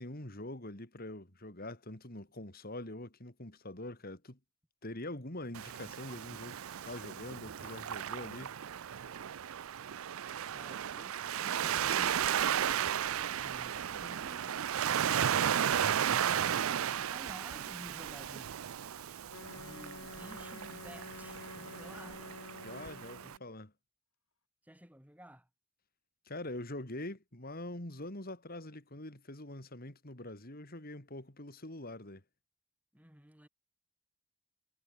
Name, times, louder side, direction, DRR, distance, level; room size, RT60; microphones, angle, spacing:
voice 1, 0.0-4.4 4.8-6.6 6.8-8.5 22.6-23.7 26.3-32.2, left 1 dB, 45° left, 3.7 m, -44 dB
Waves surf, 5.5-23.4, right 9 dB, 70° right, 0.5 m, -35 dB
voice 2, 10.5-12.3 13.4-14.6 15.2-18.7 19.5-22.2 24.6-25.5 32.9-33.5, equal, 5° right, 4.9 m, -53 dB
Wind instrument woodwind instrument, 19.3-23.4, left 3 dB, 75° left, 2.2 m, -49 dB
head